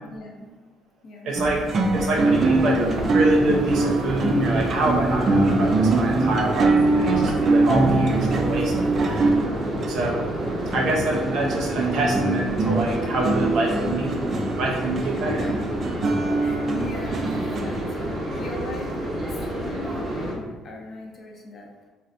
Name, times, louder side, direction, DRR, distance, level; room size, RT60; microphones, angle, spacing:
voice 1, 0.1-0.5 1.0-1.4 9.7-9.9 12.2-12.3 15.3-15.5 16.4-21.7, left 2 dB, 45° left, 0 dB, 0.6 m, -38 dB
voice 2, 1.2-1.6 1.9-9.4 9.9-10.3 10.7-14.2 14.6-15.5, right 1 dB, 60° right, -1 dB, 0.7 m, -26 dB
sound 1, 1.4-17.8, right 3 dB, 40° right, 0.3 m, -23 dB
sound 2, 2.1-20.3, right 1 dB, 20° right, 0.9 m, -29 dB
Bowed string instrument, 7.7-8.6, right 1 dB, 5° left, 0.7 m, -27 dB
3.9 x 2.0 x 2.6 m, 1.3 s
cardioid pair, 120°, 0 cm